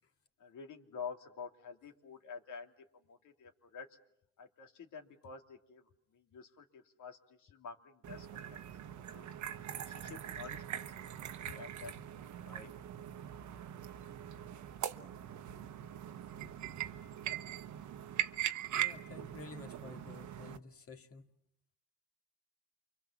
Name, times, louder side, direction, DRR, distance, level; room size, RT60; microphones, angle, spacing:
voice 1, 0.4-2.7 3.1-3.9 4.4-5.8 6.1-8.6 9.1-9.3 9.7-10.9 11.4-12.0 12.5-12.7, left 5 dB, 75° left, 3 dB, 2.9 m, -49 dB
sound 1, 8.0-20.6, right 11 dB, 75° right, 1.1 m, -41 dB
voice 2, 11.4-11.9 18.7-21.3, left 3 dB, 50° left, 5 dB, 2.3 m, -51 dB
29.5 x 24.0 x 7.3 m, 0.74 s
cardioid pair, 90°, 30 cm